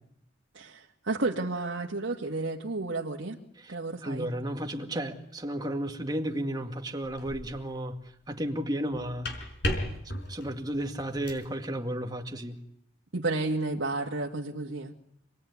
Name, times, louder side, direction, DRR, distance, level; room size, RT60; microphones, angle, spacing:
voice 1, 0.5-3.4 3.7-4.3 13.1-14.9, right 2 dB, 75° right, 2.1 m, -32 dB
voice 2, 4.0-7.9 8.3-9.3 10.3-12.6, right 1 dB, 20° right, 2.1 m, -33 dB
sound 1, 7.0-7.6 8.9-11.5, left 1 dB, 60° left, 5.4 m, -35 dB
27.5 x 21.0 x 9.6 m
head